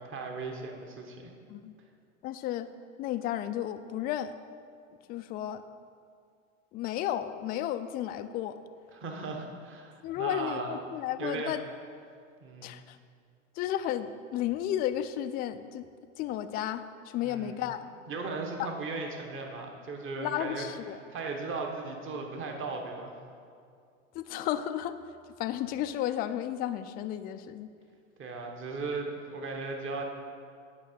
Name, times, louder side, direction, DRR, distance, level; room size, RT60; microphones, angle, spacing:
voice 1, 0.0-1.3 8.9-10.8 11.2-11.6 12.4-12.8 17.2-17.6 18.1-20.7 21.1-23.1 28.2-30.0, right 3 dB, 30° right, 2 dB, 1.4 m, -37 dB
voice 2, 2.2-2.7 3.0-4.3 5.1-5.6 6.7-8.6 10.0-11.6 12.6-13.0 13.6-15.9 16.2-17.9 18.6-18.7 20.2-21.0 24.1-25.0 25.4-27.7, left 11 dB, 25° left, 10 dB, 0.3 m, -33 dB
8.9 x 5.5 x 6.9 m, 2.3 s
hypercardioid pair, 95°, 39 cm